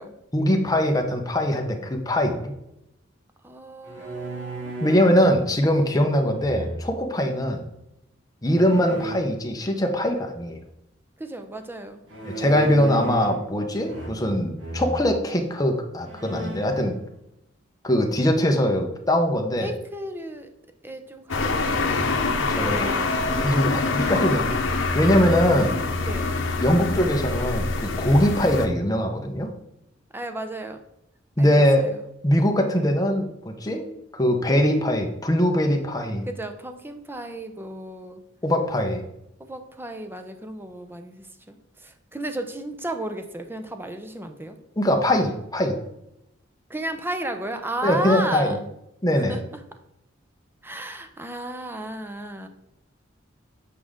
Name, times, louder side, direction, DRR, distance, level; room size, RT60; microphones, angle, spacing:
voice 1, 0.3-2.5 4.8-7.6 8.4-10.6 12.2-16.9 17.8-19.7 22.5-22.8 23.3-25.8 26.6-29.5 31.4-31.8 32.2-33.9 34.1-36.3 38.4-39.0 44.8-45.8 47.8-48.6 49.0-49.4, equal, 20° left, 3 dB, 1.0 m, -22 dB
voice 2, 3.4-4.7 11.2-12.0 19.6-20.5 20.8-22.0 22.5-23.4 25.6-26.3 30.1-30.8 31.4-32.0 36.3-38.2 39.4-44.6 46.7-48.6 49.1-49.6 50.6-52.5, right 1 dB, 10° right, 7 dB, 0.7 m, -34 dB
sound 1, 3.8-5.2 6.3-7.1 8.6-9.2 12.1-13.5 13.8-14.3 14.6-15.0 15.6-15.7 16.0-16.8, right 1 dB, 80° right, 2.2 m, -34 dB
sound 2, 21.3-28.7, left 3 dB, 85° left, 0.9 m, -25 dB
8.4 x 4.9 x 3.7 m, 0.84 s
head